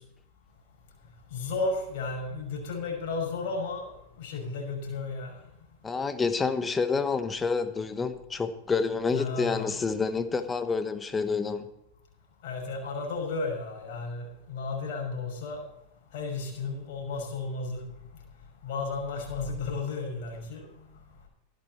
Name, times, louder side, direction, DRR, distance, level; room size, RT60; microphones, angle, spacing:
voice 1, 1.3-3.9 4.2-5.4 9.1-9.7 12.4-15.6 16.1-17.9 18.6-20.7, left 3 dB, 65° left, 0 dB, 6.0 m, -33 dB
voice 2, 5.8-11.7, left 4 dB, 20° left, 10 dB, 1.2 m, -28 dB
13.5 x 11.5 x 4.4 m, 0.84 s
hypercardioid pair, 110°, 0 cm